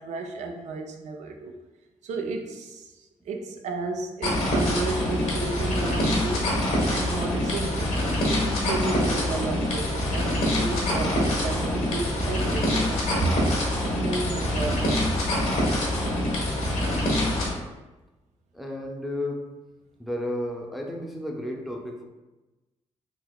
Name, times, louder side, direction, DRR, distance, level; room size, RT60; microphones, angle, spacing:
voice 1, 0.0-1.5 2.0-6.5 6.9-8.0 8.3-13.3 13.9-15.1, right 3 dB, 75° right, 3 dB, 0.5 m, -32 dB
sound 1, 4.2-17.5, left 1 dB, 75° left, 1.1 m, -25 dB
voice 2, 18.5-19.4 20.0-22.0, left 1 dB, ahead, 0 dB, 0.6 m, -32 dB
3.8 x 2.8 x 2.3 m, 1.1 s
cardioid pair, 65°, 12 cm